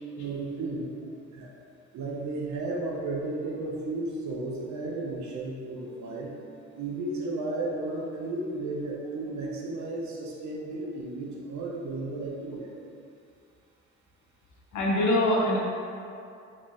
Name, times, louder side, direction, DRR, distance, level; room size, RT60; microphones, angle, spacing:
voice 1, 0.2-0.9 1.3-1.5 1.9-6.3 6.7-12.8, right 2 dB, 70° right, -3 dB, 1.0 m, -33 dB
voice 2, 14.7-15.6, left 1 dB, 75° left, -3 dB, 0.9 m, -23 dB
4.9 x 3.5 x 3.1 m, 2.5 s
cardioid pair, 90°, 30 cm